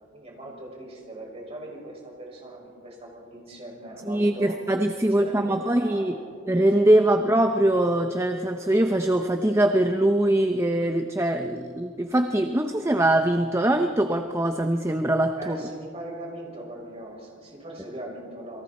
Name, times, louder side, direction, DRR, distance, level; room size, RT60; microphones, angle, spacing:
voice 1, 0.1-4.6 5.0-6.3 7.0-7.2 15.4-18.6, right 1 dB, 30° right, -2 dB, 6.3 m, -40 dB
voice 2, 4.1-6.1 6.5-15.6, right 1 dB, 15° right, 6 dB, 0.7 m, -22 dB
29.0 x 23.0 x 4.3 m, 2.2 s
head